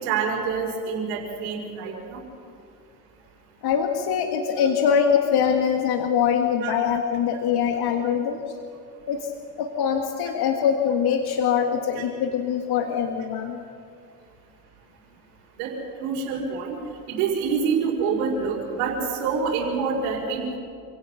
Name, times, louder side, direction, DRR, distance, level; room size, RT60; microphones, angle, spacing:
voice 1, 0.0-2.2 6.6-6.7 11.9-12.0 15.6-15.7 16.0-16.8 17.1-20.6, right 5 dB, 75° right, -5 dB, 5.3 m, -26 dB
voice 2, 3.6-8.4 9.1-9.3 9.6-13.6, left 7 dB, 60° left, 4 dB, 1.9 m, -23 dB
28.0 x 17.0 x 5.9 m, 2.4 s
hypercardioid pair, 70°, 43 cm